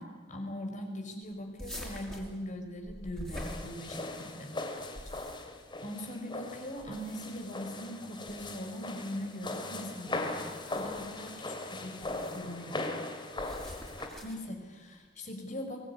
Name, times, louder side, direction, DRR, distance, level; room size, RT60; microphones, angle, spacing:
voice 1, 0.0-5.3 5.8-12.9 14.2-15.9, equal, 40° left, 4 dB, 5.0 m, -41 dB
sound 1, 1.6-4.2 4.8-5.6 6.8-7.4 8.3-8.5 10.3-11.1 12.0-12.5 13.4-14.5, equal, 5° left, 5.8 m, -45 dB
sound 2, 3.3-14.1, left 2 dB, 25° left, 2.7 m, -39 dB
24.0 x 19.5 x 9.8 m, 1.3 s
head